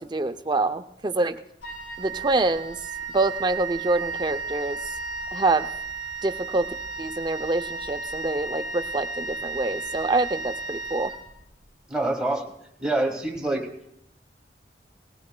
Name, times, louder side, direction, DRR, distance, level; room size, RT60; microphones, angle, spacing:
voice 1, 0.0-1.4 2.0-2.8 3.1-4.9 5.3-5.7 6.2-6.7 7.0-11.1, right 2 dB, 25° right, 9 dB, 0.5 m, -26 dB
Wind instrument woodwind instrument, 1.6-11.7, right 3 dB, 75° left, 2.7 m, -34 dB
voice 2, 11.9-12.5 12.8-13.7, right 2 dB, 5° right, 2 dB, 1.4 m, -26 dB
19.0 x 16.0 x 2.2 m, 0.78 s
head